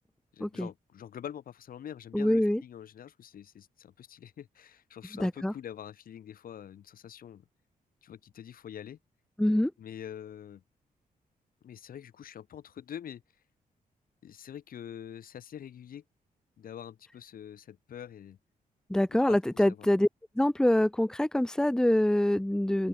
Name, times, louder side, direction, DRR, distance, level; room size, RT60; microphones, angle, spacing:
voice 1, 0.3-7.5 8.0-9.0 9.8-10.6 11.6-13.2 14.2-16.0 16.6-18.4 19.1-19.9, left 9 dB, 70° left, 5.3 m, -45 dB
voice 2, 2.1-2.6 5.2-5.5 9.4-9.7 18.9-20.1 20.4-22.9, left 1 dB, 5° left, 1.1 m, -25 dB
open air
cardioid pair, 130°, 15 cm